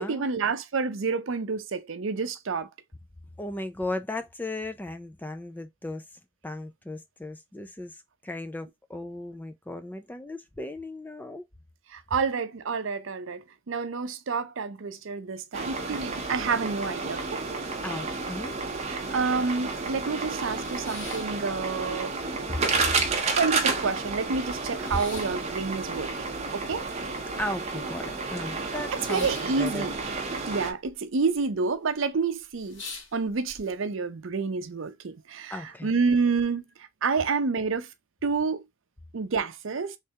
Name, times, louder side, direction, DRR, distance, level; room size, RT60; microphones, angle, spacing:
voice 1, 0.0-2.7 11.9-17.4 18.9-22.1 23.3-26.1 26.5-26.9 28.9-29.9 30.5-32.8 33.1-37.9 38.2-38.6 39.1-40.0, right 4 dB, 65° right, 0.6 m, -29 dB
voice 2, 3.4-6.0 6.4-11.4 17.8-18.6 22.5-22.6 27.4-29.3 29.6-29.9 35.5-35.9, left 1 dB, 10° left, 0.3 m, -36 dB
sound 1, 15.5-30.7, right 3 dB, 30° right, 0.7 m, -31 dB
sound 2, 20.0-22.0 22.3-23.1 23.4-23.5 23.7-27.9 28.1-30.9 31.2-31.7 32.1-32.2 32.5-33.6, left 3 dB, 60° left, 1.5 m, -45 dB
3.3 x 3.3 x 2.7 m
head